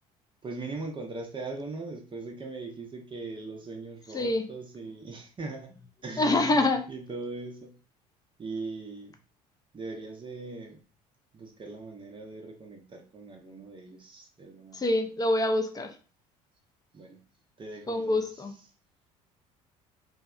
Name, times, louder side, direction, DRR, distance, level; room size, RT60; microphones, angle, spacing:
voice 1, 0.4-5.7 6.0-6.6 6.9-7.8 8.4-9.1 9.7-10.8 11.3-14.8 16.9-17.2 17.6-18.2, right 3 dB, 25° right, 3 dB, 0.6 m, -40 dB
voice 2, 6.2-6.9 14.7-15.9 17.9-18.5, left 2 dB, 20° left, 7 dB, 0.5 m, -25 dB
2.6 x 2.1 x 2.4 m, 0.36 s
hypercardioid pair, 60°, 19 cm